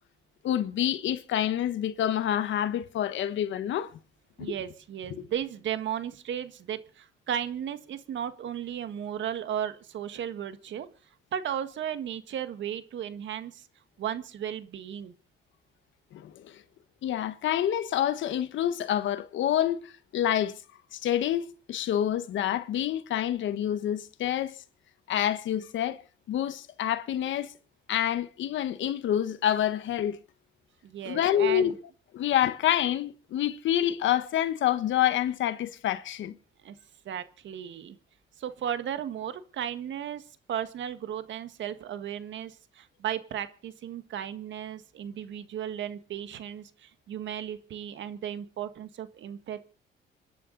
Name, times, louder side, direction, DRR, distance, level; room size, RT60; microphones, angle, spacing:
voice 1, 0.4-3.9 4.4-4.5 5.1-5.3 16.1-16.6 17.0-20.6 20.9-24.6 25.1-26.0 26.3-27.5 27.9-30.2 31.1-31.8 32.1-36.4, left 11 dB, 80° left, 1.3 m, -27 dB
voice 2, 4.4-10.9 11.3-13.7 14.0-15.1 30.8-31.7 36.6-36.8 37.1-38.0 38.4-49.7, right 9 dB, 75° right, 1.8 m, -35 dB
27.0 x 11.0 x 4.0 m
cardioid pair, 95°, 19 cm